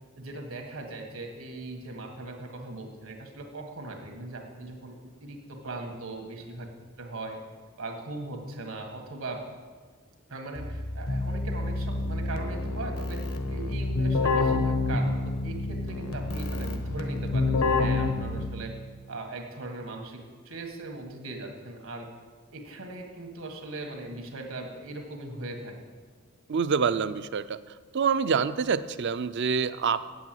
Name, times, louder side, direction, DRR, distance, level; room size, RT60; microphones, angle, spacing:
voice 1, 0.2-6.7 7.0-7.4 7.8-9.4 10.3-18.7 19.1-22.1 22.5-25.8, right 2 dB, 75° right, 3 dB, 1.7 m, -39 dB
Keyboard (musical), 10.6-18.8, left 2 dB, 85° left, 1.2 m, -28 dB
voice 2, 26.5-27.6 27.9-30.1, right 6 dB, 55° right, 14 dB, 0.4 m, -26 dB
8.9 x 8.3 x 7.7 m, 1.5 s
head